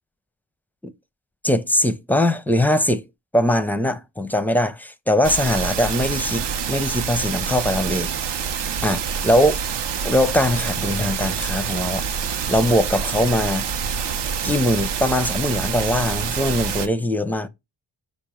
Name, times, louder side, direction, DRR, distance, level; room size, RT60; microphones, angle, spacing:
voice 1, 1.4-3.0 3.3-8.1 8.8-9.5 10.0-12.0 12.5-13.7 14.4-17.5, left 1 dB, 5° left, 0.5 m, -21 dB
sound 1, 5.2-16.9, right 7 dB, 60° right, 0.6 m, -26 dB
5.2 x 2.1 x 4.8 m
supercardioid pair, 40°, 47 cm